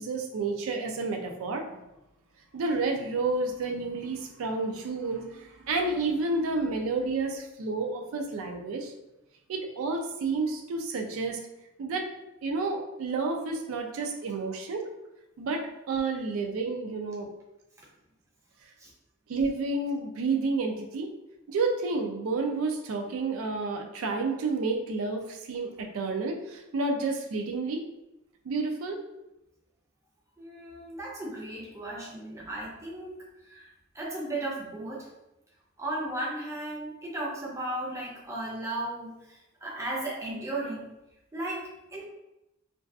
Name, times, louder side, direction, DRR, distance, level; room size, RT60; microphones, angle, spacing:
voice 1, 0.0-1.6 2.5-8.9 9.5-11.4 11.8-12.1 12.4-14.9 15.4-17.3 19.3-21.1 21.5-27.8 28.5-29.0, right 3 dB, 80° right, 4 dB, 0.3 m, -30 dB
voice 2, 30.4-33.2 33.5-33.7 33.9-35.1 35.8-40.9 41.3-42.0, right 1 dB, 15° right, -4 dB, 0.4 m, -35 dB
2.5 x 2.3 x 2.3 m, 0.91 s
head